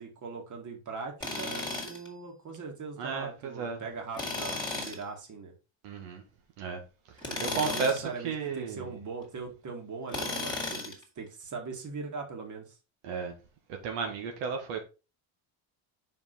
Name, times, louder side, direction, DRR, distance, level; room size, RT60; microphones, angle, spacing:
voice 1, 0.0-5.5 7.3-12.8, right 4 dB, 40° right, 2.0 m, -40 dB
Tools, 1.2-2.1 4.1-5.0 7.2-8.1 10.1-11.0, left 2 dB, 10° left, 1.9 m, -34 dB
voice 2, 3.0-3.8 5.8-6.2 6.6-6.8 7.4-8.9 13.0-13.3 13.8-14.8, right 5 dB, 90° right, 1.5 m, -33 dB
5.1 x 5.0 x 4.0 m
cardioid pair, 115°, 48 cm